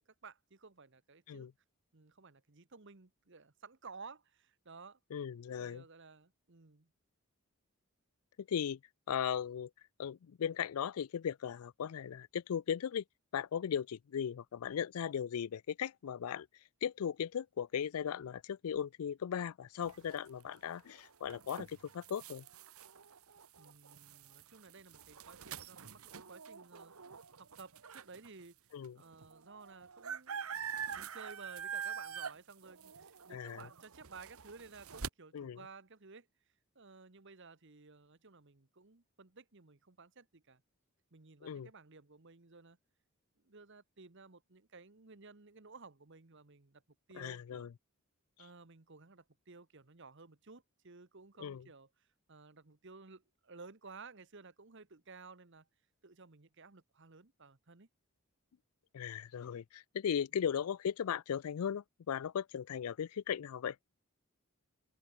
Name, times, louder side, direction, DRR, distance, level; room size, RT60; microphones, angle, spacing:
voice 1, 0.0-1.5 1.9-5.0 5.5-6.9 23.6-26.9 27.4-28.6 28.9-30.5 30.9-36.3 36.7-40.6 41.1-42.8 43.4-46.8 47.1-47.7 48.4-55.7 56.0-57.9, right 4 dB, 55° right, 1.2 m, -55 dB
voice 2, 5.1-5.8 8.4-8.8 9.1-9.7 10.0-13.0 13.3-16.5 16.8-22.4 28.7-29.0 33.3-33.7 35.3-35.6 41.4-41.7 47.2-47.7 51.4-51.6 58.9-63.8, left 8 dB, 80° left, 0.4 m, -37 dB
sound 1, 19.8-28.3 28.8-28.9 29.1-35.1, right 7 dB, 75° right, 1.2 m, -45 dB
open air
head